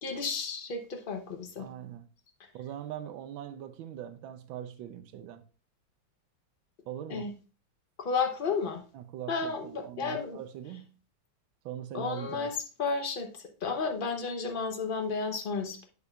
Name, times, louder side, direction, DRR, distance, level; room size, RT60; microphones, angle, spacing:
voice 1, 0.0-1.7 7.1-7.3 8.0-8.8 9.3-10.4 11.9-12.5 12.8-15.9, left 4 dB, 65° left, 0.5 m, -32 dB
voice 2, 1.6-2.1 2.5-5.4 6.9-7.3 8.9-10.9 11.6-12.5, right 10 dB, 90° right, 1.4 m, -41 dB
8.2 x 6.7 x 2.3 m
omnidirectional pair, 2.1 m